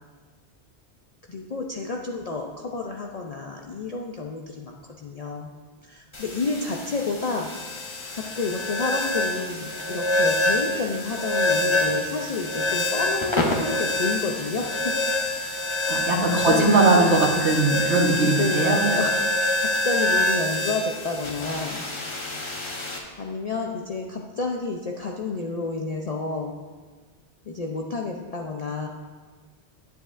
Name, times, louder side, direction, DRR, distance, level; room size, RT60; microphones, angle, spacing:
voice 1, 1.3-5.5 5.8-7.5 8.1-15.1 16.2-17.1 18.3-21.8 23.2-26.5 27.4-28.9, left 3 dB, 55° left, 1 dB, 0.4 m, -30 dB
sound 1, 6.1-23.0, left 1 dB, 30° left, 0.8 m, -26 dB
voice 2, 15.9-17.2 17.4-18.8, right 3 dB, 75° right, 0 dB, 1.3 m, -20 dB
9.3 x 7.5 x 2.5 m, 1.4 s
omnidirectional pair, 1.2 m